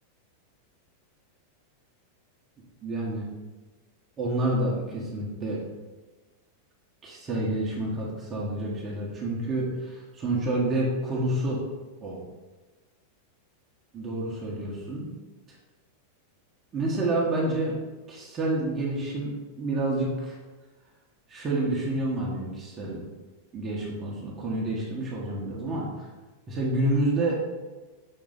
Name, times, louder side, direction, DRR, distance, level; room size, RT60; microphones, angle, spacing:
voice 1, 2.8-3.2 4.2-5.6 7.0-11.6 12.0-12.2 13.9-15.1 16.7-17.8 18.1-19.3 19.6-20.4 21.3-23.0 23.5-26.0 26.5-27.4, right 1 dB, 25° right, -5 dB, 1.4 m, -28 dB
6.5 x 3.8 x 4.0 m, 1.2 s
figure-of-eight pair, 90°, 0 cm